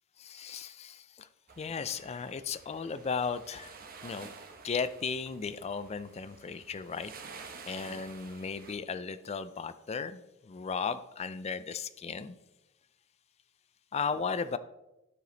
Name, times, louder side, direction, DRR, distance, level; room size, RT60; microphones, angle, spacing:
voice 1, 0.2-1.3 1.6-3.7 4.0-4.3 4.6-7.1 7.7-12.4 13.9-14.6, left 5 dB, 30° left, 13 dB, 0.4 m, -35 dB
sound 1, 1.5-8.8, right 5 dB, 45° right, 0.9 m, -51 dB
12.0 x 5.0 x 3.9 m, 0.94 s
head